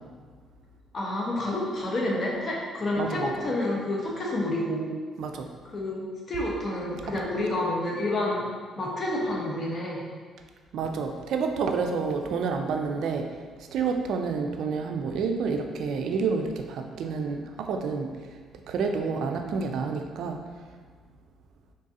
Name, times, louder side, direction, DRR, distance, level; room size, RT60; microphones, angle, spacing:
voice 1, 0.9-4.9 5.7-8.5 8.8-10.0, left 1 dB, 35° left, -3 dB, 1.0 m, -29 dB
voice 2, 3.0-3.3 5.2-5.5 10.7-13.3 13.7-18.1 18.7-20.4, right 5 dB, 70° right, 4 dB, 0.3 m, -29 dB
3.9 x 3.7 x 2.7 m, 1.5 s
cardioid pair, 100°, 0 cm